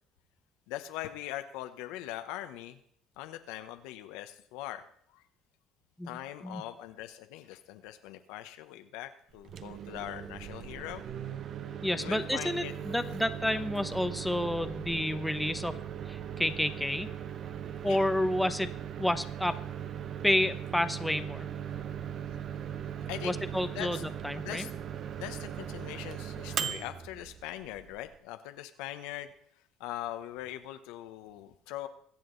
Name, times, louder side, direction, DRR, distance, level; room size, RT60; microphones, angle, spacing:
voice 1, 0.7-2.8 3.2-4.8 5.1-5.2 6.0-11.0 12.0-12.7 13.1-13.2 17.8-18.0 21.7-21.8 23.1-23.4 23.7-24.0 24.4-24.7 25.1-29.3 29.8-31.9, left 14 dB, 80° left, 9 dB, 1.0 m, -41 dB
Microwave oven, 9.3-28.2, right 9 dB, 50° right, 0.8 m, -39 dB
voice 2, 11.8-15.8 16.0-17.1 17.8-18.7 19.0-19.6 20.2-21.5 23.2-24.7, left 1 dB, 5° left, 9 dB, 1.0 m, -30 dB
22.5 x 7.8 x 4.0 m, 0.64 s
supercardioid pair, 85°, 0 cm